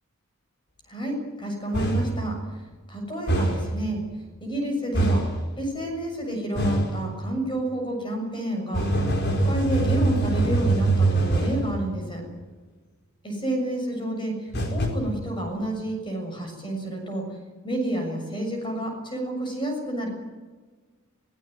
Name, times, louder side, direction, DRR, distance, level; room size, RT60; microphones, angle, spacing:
voice 1, 0.9-2.4 2.9-4.0 4.4-5.3 5.6-12.2 13.2-17.4 17.6-20.1, right 1 dB, 25° left, 2 dB, 6.9 m, -30 dB
sound 1, 1.7-2.2 3.3-3.7 4.9-5.4 6.6-7.0 8.7-11.7 14.5-14.9, right 2 dB, 50° left, 4.9 m, -23 dB
23.5 x 17.0 x 9.4 m, 1.4 s
head